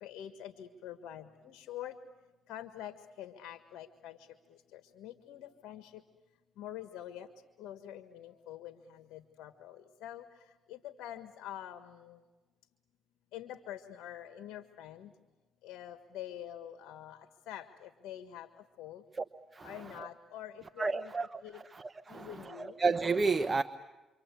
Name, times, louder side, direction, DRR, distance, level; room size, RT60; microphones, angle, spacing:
voice 1, 0.0-2.0 2.5-4.2 4.7-6.0 6.6-7.3 7.6-10.2 10.7-12.2 13.3-15.1 15.6-17.2 17.5-18.5 18.8-19.0 19.6-21.1 21.4-21.6 22.1-22.8, left 11 dB, 85° left, 8 dB, 1.5 m, -46 dB
voice 2, 20.8-23.6, right 4 dB, 30° right, 9 dB, 0.9 m, -32 dB
29.0 x 25.0 x 8.3 m, 1.2 s
cardioid pair, 80°, 0 cm